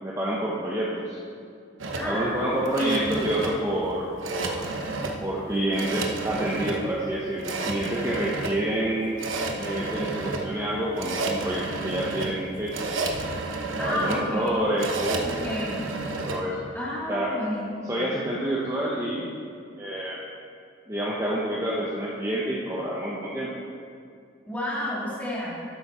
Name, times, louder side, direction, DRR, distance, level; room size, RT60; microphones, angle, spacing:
voice 1, 0.0-1.2 2.0-4.6 5.2-9.2 9.6-13.0 13.8-15.3 16.3-16.6 17.1-17.3 17.9-19.3 19.8-20.2 20.9-23.5, right 1 dB, 15° right, -5 dB, 0.9 m, -28 dB
sound 1, 1.8-16.4, right 3 dB, 90° right, 0.9 m, -32 dB
voice 2, 2.0-3.2 13.8-14.6 15.2-15.9 16.7-17.6 17.9-18.1 24.5-25.6, equal, 10° left, -7 dB, 2.3 m, -31 dB
12.0 x 8.1 x 4.3 m, 2.3 s
head